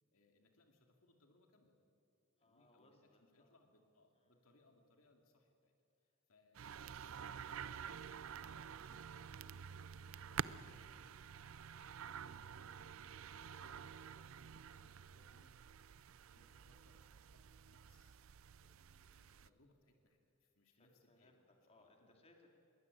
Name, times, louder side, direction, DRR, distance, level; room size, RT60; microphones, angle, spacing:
voice 1, 0.1-1.8 2.4-5.7 6.3-15.5 16.1-18.1 18.6-21.4 21.7-22.2, left 2 dB, 80° left, 3 dB, 2.4 m, -73 dB
voice 2, 2.4-3.6 4.1-4.4 6.0-6.2 20.7-22.5, left 2 dB, 30° left, 2 dB, 3.1 m, -70 dB
sound 1, 6.5-19.5, right 7 dB, 70° right, 0.5 m, -50 dB
22.0 x 19.0 x 9.6 m, 2.5 s
head